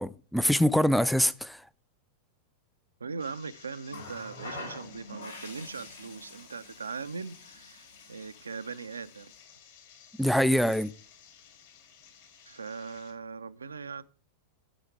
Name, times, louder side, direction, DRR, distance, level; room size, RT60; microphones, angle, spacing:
voice 1, 0.0-1.7 10.2-10.9, equal, ahead, 0.3 m, -24 dB
voice 2, 3.0-9.3 12.5-14.0, right 5 dB, 75° right, 0.4 m, -40 dB
sound 1, 3.2-13.1, left 8 dB, 55° left, 2.3 m, -56 dB
Water tap faucet, 3.9-9.4 10.6-10.8, left 2 dB, 75° left, 3.2 m, -46 dB
10.0 x 6.3 x 4.7 m
figure-of-eight pair, 90°, 0 cm